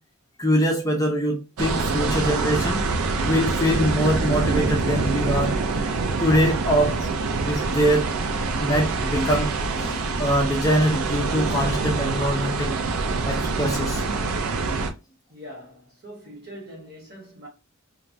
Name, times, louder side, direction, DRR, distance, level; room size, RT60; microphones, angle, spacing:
voice 1, 0.4-2.9 3.2-5.6 6.2-7.1 7.5-8.1 8.6-12.7 13.2-14.0, equal, 15° left, 0.6 m, -23 dB
sound 1, 1.6-14.9, right 3 dB, 75° right, 0.4 m, -25 dB
voice 2, 15.3-17.5, equal, 50° right, 1.3 m, -42 dB
2.9 x 2.3 x 2.6 m
head